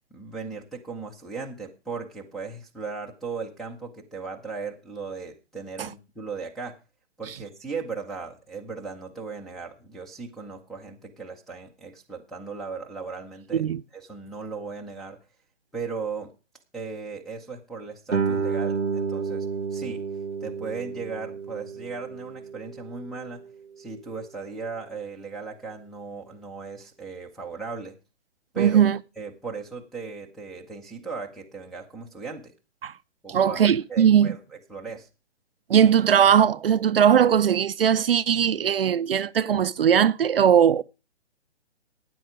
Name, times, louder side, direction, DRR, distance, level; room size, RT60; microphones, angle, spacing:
voice 1, 0.1-6.8 7.2-13.7 13.9-15.2 15.7-16.3 16.7-20.0 20.4-23.4 23.8-27.9 28.5-28.8 29.2-32.5 33.2-34.4 34.7-35.1, right 4 dB, ahead, 0.5 m, -37 dB
Guitar, 18.1-23.5, right 5 dB, 90° right, 1.0 m, -30 dB
voice 2, 28.6-29.0 32.8-32.9 33.3-34.4 35.7-40.8, right 8 dB, 55° right, 0.5 m, -19 dB
12.5 x 9.2 x 4.9 m
figure-of-eight pair, 130°, 34 cm